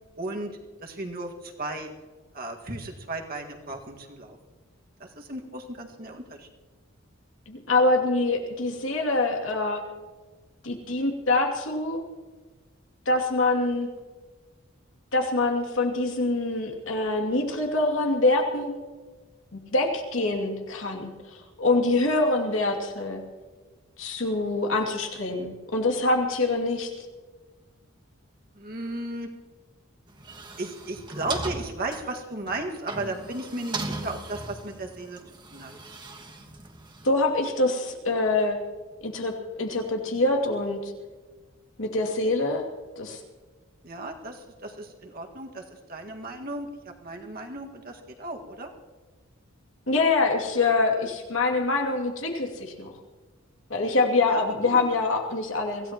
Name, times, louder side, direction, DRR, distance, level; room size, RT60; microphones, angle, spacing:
voice 1, 0.2-1.9 2.3-4.4 5.0-6.5 28.6-29.3 30.6-35.2 35.5-35.7 42.2-42.3 43.8-45.6 45.9-48.7 54.3-54.4 54.7-54.8, right 2 dB, 45° right, 2 dB, 1.9 m, -35 dB
voice 2, 7.5-9.8 10.6-12.0 13.1-13.9 15.1-18.7 19.5-23.2 24.0-26.9 37.0-38.6 39.0-39.3 39.6-40.9 41.8-42.6 43.0-43.2 49.9-52.9 53.7-55.9, left 2 dB, 75° left, 0 dB, 2.6 m, -25 dB
sound 1, 30.1-37.1, right 2 dB, 20° right, 1.4 m, -38 dB
25.0 x 16.5 x 3.0 m, 1.3 s
head